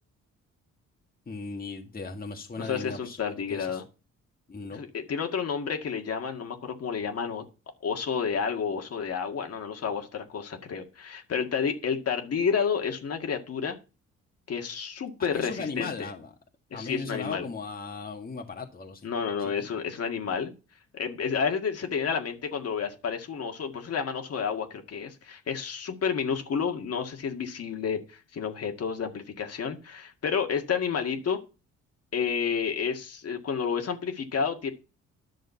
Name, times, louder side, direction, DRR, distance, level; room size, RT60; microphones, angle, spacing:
voice 1, 1.3-3.8 4.5-4.8 15.2-16.3 16.7-19.1 19.4-19.7, left 4 dB, 30° left, 1.8 m, -37 dB
voice 2, 2.6-3.8 4.7-7.4 7.8-13.8 14.5-16.1 16.7-17.5 19.0-20.5 20.9-31.4 32.1-34.7, left 6 dB, 55° left, 1.9 m, -30 dB
11.0 x 6.3 x 5.7 m
cardioid pair, 90°, 30 cm